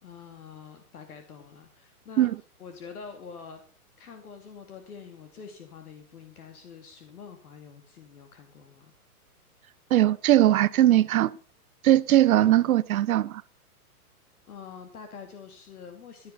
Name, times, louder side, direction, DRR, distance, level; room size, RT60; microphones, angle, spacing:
voice 1, 0.0-2.3 2.6-3.6 4.0-8.9 12.4-12.7 14.5-16.3, left 6 dB, 70° left, 2.6 m, -46 dB
voice 2, 9.9-11.3 11.8-13.4, right 13 dB, 65° right, 0.7 m, -20 dB
15.5 x 11.0 x 5.5 m
hypercardioid pair, 130°, 46 cm